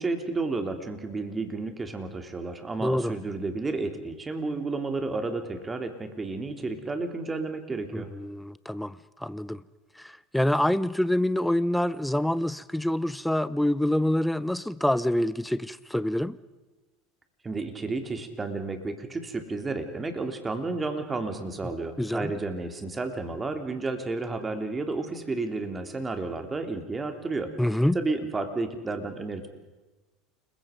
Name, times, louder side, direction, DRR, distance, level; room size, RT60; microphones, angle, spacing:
voice 1, 0.0-8.1 17.4-27.6 27.9-29.5, right 3 dB, 20° right, 6 dB, 3.3 m, -32 dB
voice 2, 2.8-3.1 7.9-9.6 10.0-16.4 22.0-22.3 27.6-28.0, left 1 dB, 5° left, 17 dB, 0.8 m, -26 dB
29.5 x 21.5 x 5.2 m, 1.2 s
hypercardioid pair, 80°, 0 cm